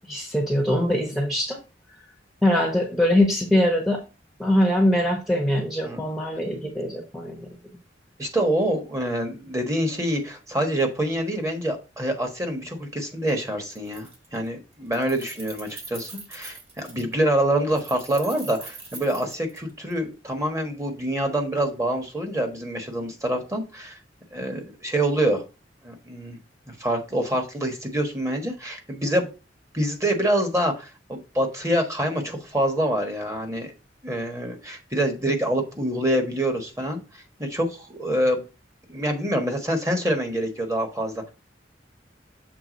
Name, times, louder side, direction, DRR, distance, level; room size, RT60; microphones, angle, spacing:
voice 1, 0.1-1.6 2.4-4.0 4.4-7.4, left 1 dB, ahead, 0 dB, 1.0 m, -22 dB
voice 2, 8.2-24.0 24.3-25.4 25.8-26.4 26.7-29.3 29.7-33.7 34.0-38.4 38.9-41.3, right 1 dB, 15° right, 4 dB, 1.3 m, -26 dB
Keys jangling, 13.3-13.4 13.7-14.5 14.7-17.1 17.7-20.0, right 3 dB, 35° right, 1.9 m, -42 dB
6.8 x 3.6 x 5.0 m, 0.30 s
head